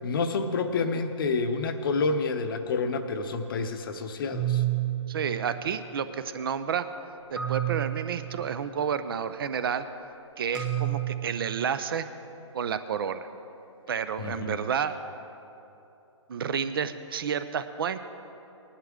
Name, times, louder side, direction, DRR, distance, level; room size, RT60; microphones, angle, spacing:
voice 1, 0.0-4.6 14.2-14.6, left 4 dB, 45° left, 8 dB, 0.8 m, -28 dB
sound 1, 1.6-2.4 4.3-6.0 7.4-8.9 10.5-11.7, right 12 dB, 5° right, 1.4 m, -32 dB
voice 2, 5.1-6.9 7.3-9.9 10.4-12.1 12.5-13.3 13.9-15.0 16.3-18.0, right 7 dB, 45° right, 11 dB, 0.6 m, -30 dB
18.0 x 11.0 x 3.7 m, 2.9 s
hypercardioid pair, 150°, 16 cm